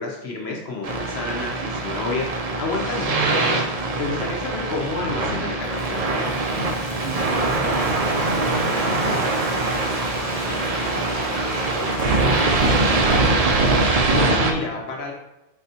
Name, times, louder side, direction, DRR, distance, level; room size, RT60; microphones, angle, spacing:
voice 1, 0.0-2.3 2.6-3.4 4.0-6.0 13.7-15.1, left 3 dB, 70° left, -1 dB, 0.9 m, -29 dB
sound 1, 0.8-14.5, right 3 dB, 50° right, 0.5 m, -22 dB
sound 2, 4.7-9.3 9.6-9.9, equal, 20° left, 0.8 m, -37 dB
Frying (food), 5.4-13.2, left 1 dB, 35° left, 1.2 m, -36 dB
voice 2, 7.0-13.4, right 2 dB, 65° right, -6 dB, 1.1 m, -39 dB
4.6 x 4.2 x 2.7 m, 0.95 s
omnidirectional pair, 1.2 m